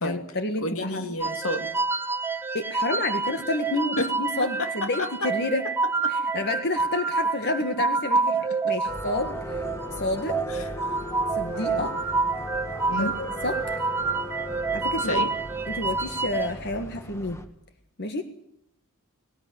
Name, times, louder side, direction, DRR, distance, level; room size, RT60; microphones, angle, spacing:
voice 1, 0.0-1.0 2.5-5.6 6.1-9.6 9.9-10.4 11.4-11.9 13.0-13.8 14.7-15.2 15.7-17.4 18.0-18.2, left 2 dB, 50° left, 7 dB, 1.7 m, -30 dB
voice 2, 0.6-1.8 4.0-4.1 4.4-5.3 6.0-6.2 10.5-10.7 11.6-11.9 12.9-13.1 15.0-15.3, left 1 dB, 75° left, 8 dB, 2.3 m, -30 dB
sound 1, 1.2-16.5, right 4 dB, 10° right, 1.0 m, -28 dB
sound 2, 8.9-17.5, left 1 dB, 15° left, 1.8 m, -37 dB
19.5 x 19.0 x 9.7 m, 0.74 s
head